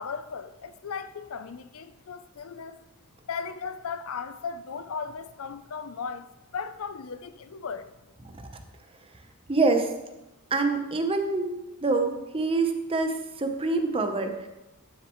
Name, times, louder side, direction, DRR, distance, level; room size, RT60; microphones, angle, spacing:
voice 1, 0.0-2.8 3.3-6.3 6.5-7.9, left 5 dB, 75° left, 0.5 m, -36 dB
voice 2, 9.5-9.9 10.5-11.5 11.8-14.5, right 3 dB, 25° right, 0.8 m, -25 dB
11.5 x 6.6 x 3.1 m
head